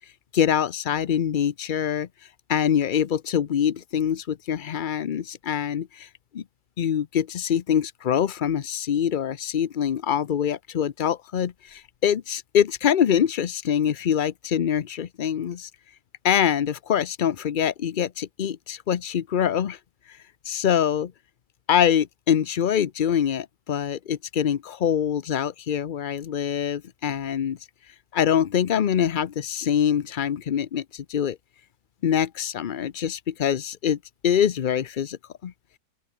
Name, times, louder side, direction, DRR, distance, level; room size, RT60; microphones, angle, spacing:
voice 1, 0.3-2.1 2.5-6.1 6.3-6.4 6.8-15.7 16.2-19.8 20.4-21.1 21.7-27.6 28.1-31.4 32.0-34.0 34.2-35.5, left 9 dB, 60° left, 0.5 m, -24 dB
open air
omnidirectional pair, 1.7 m